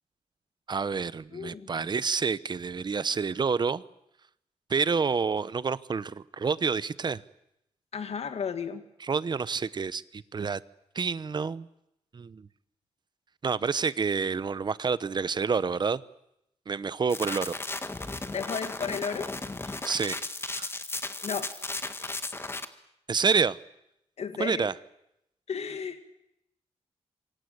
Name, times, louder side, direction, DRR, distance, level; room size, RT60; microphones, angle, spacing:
voice 1, 0.7-3.8 4.7-7.2 9.0-10.6 10.9-11.7 12.1-12.5 13.4-16.0 16.7-17.6 19.8-20.2 20.5-20.7 23.1-23.6 24.4-24.7, right 5 dB, 40° right, 17 dB, 0.9 m, -28 dB
voice 2, 1.3-1.9 7.9-8.8 18.3-19.3 19.6-19.9 21.2-21.5 24.2-24.7 25.5-26.0, left 6 dB, 65° left, 9 dB, 2.2 m, -34 dB
sound 1, 17.1-22.6, left 2 dB, 20° left, 1.7 m, -35 dB
27.0 x 24.5 x 8.0 m, 0.81 s
wide cardioid pair, 145°, 12 cm